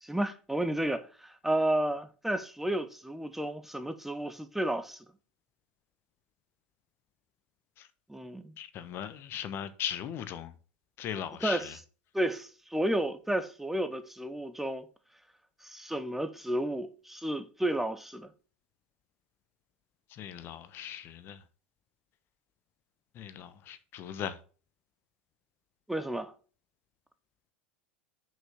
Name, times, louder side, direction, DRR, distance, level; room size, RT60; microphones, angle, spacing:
voice 1, 0.0-5.0 8.1-8.5 11.2-11.8 12.1-14.9 15.6-18.3 25.9-26.3, right 1 dB, 5° right, 0.8 m, -32 dB
voice 2, 8.6-10.5 11.0-11.6 20.2-21.4 23.2-24.4, left 10 dB, 45° left, 1.0 m, -38 dB
6.1 x 5.5 x 6.6 m
hypercardioid pair, 85°, 6 cm